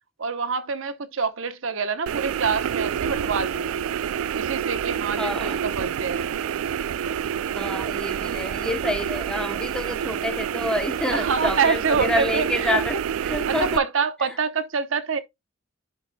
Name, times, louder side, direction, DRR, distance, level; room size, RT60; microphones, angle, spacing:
voice 1, 0.2-3.8 4.3-6.3 11.1-12.8 13.5-15.2, right 5 dB, 70° right, 0.8 m, -26 dB
sound 1, 2.1-13.8, right 8 dB, 85° right, 0.3 m, -28 dB
voice 2, 5.2-5.6 7.6-13.0 13.2-13.7, left 1 dB, 5° left, 0.8 m, -28 dB
11.0 x 4.9 x 2.2 m
head